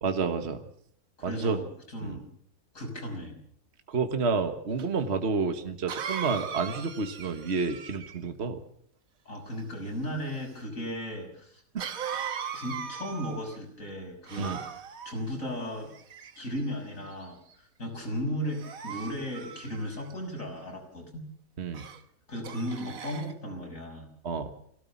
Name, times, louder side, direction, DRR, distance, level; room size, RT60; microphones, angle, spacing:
voice 1, 0.0-0.6 1.2-1.6 2.0-2.2 3.9-8.6 11.7-11.9 14.4-14.6 21.6-21.9 24.2-24.5, right 4 dB, 45° right, 7 dB, 1.6 m, -30 dB
voice 2, 1.2-2.2 2.7-3.4 9.2-11.6 12.5-14.6 15.0-15.9 16.4-21.2 22.3-24.1, equal, 55° left, 1 dB, 6.5 m, -36 dB
Cough, 4.8-4.9 5.9-8.3 11.8-13.6 14.3-15.1 15.9-16.6 17.2-17.5 18.5-20.1 21.7-22.0 22.4-23.3, right 7 dB, 65° right, 1.6 m, -38 dB
23.0 x 17.0 x 7.2 m, 0.65 s
omnidirectional pair, 1.6 m